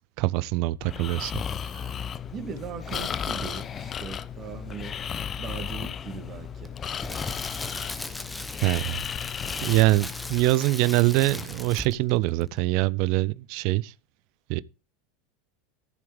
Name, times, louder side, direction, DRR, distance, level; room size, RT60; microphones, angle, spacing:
voice 1, 0.2-1.3 1.7-1.9 8.6-9.0 9.6-13.9 14.5-14.6, right 19 dB, 50° right, 0.5 m, -24 dB
Breathing, 0.8-10.5, left 8 dB, 30° left, 0.5 m, -34 dB
voice 2, 2.3-4.9 5.4-6.7, right 7 dB, 35° right, 2.2 m, -39 dB
Crackle, 6.6-12.1 12.4-12.6, left 2 dB, 10° left, 1.1 m, -38 dB
14.5 x 7.6 x 3.5 m
figure-of-eight pair, 80°, 0 cm